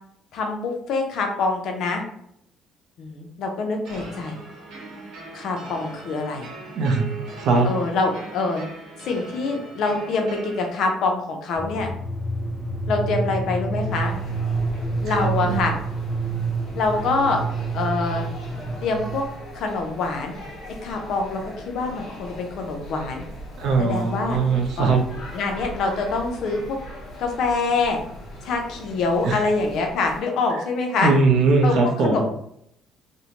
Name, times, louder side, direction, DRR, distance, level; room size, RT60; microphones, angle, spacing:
voice 1, 0.3-2.0 3.0-4.4 5.3-6.5 7.6-8.6 9.0-11.9 12.9-14.1 15.0-15.8 16.7-17.4 17.7-18.3 18.8-19.2 19.5-20.3 20.8-23.2 23.8-24.4 24.8-25.0 25.3-26.8 27.2-28.0 28.4-31.1 31.6-32.2, left 3 dB, 65° left, 3 dB, 0.5 m, -25 dB
sound 1, 3.8-10.7, right 2 dB, 80° right, 0.9 m, -40 dB
voice 2, 6.8-7.1 7.4-7.7 15.1-15.6 23.6-25.0 29.2-29.4 31.0-32.2, right 3 dB, 65° right, 2 dB, 0.6 m, -20 dB
sound 2, 11.6-19.4, right 3 dB, 5° left, 0.4 m, -28 dB
sound 3, 13.9-30.2, equal, 50° left, 1.0 m, -40 dB
2.6 x 2.1 x 2.9 m, 0.72 s
cardioid pair, 130°, 0 cm